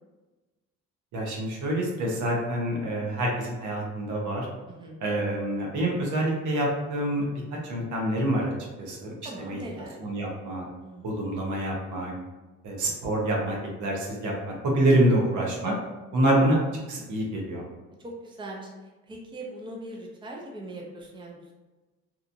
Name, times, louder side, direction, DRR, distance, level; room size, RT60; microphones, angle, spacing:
voice 1, 1.1-4.5 5.0-7.2 7.6-8.5 8.8-9.6 10.0-10.7 11.0-12.1 12.6-15.7 16.1-16.6 16.9-17.6, right 1 dB, 80° right, -2 dB, 0.9 m, -26 dB
voice 2, 9.2-10.0 10.8-11.1 18.0-18.7 19.1-21.5, right 1 dB, 15° right, -1 dB, 0.6 m, -40 dB
2.9 x 2.4 x 2.6 m, 1.2 s
cardioid pair, 90°, 30 cm